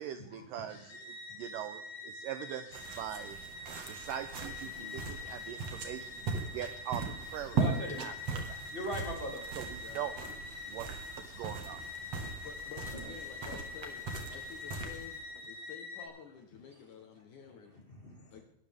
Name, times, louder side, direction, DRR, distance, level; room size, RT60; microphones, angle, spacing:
voice 1, 0.0-3.4 3.9-7.6 8.0-8.6 9.6-10.1 10.7-10.9 11.3-11.8, right 10 dB, 85° right, 10 dB, 1.9 m, -42 dB
sound 1, 0.7-16.1, left 2 dB, 90° left, 5.2 m, -45 dB
sound 2, 2.7-15.5, right 4 dB, 50° right, 2.3 m, -40 dB
voice 2, 4.8-5.1 7.5-8.0 8.7-9.4 10.6-10.8 12.9-13.1 17.9-18.4, equal, 15° left, 0 dB, 2.3 m, -41 dB
voice 3, 9.6-10.4 12.4-15.2 15.5-17.8 18.3-18.4, left 7 dB, 65° left, 5 dB, 2.2 m, -51 dB
21.0 x 12.0 x 3.5 m, 0.81 s
omnidirectional pair, 4.6 m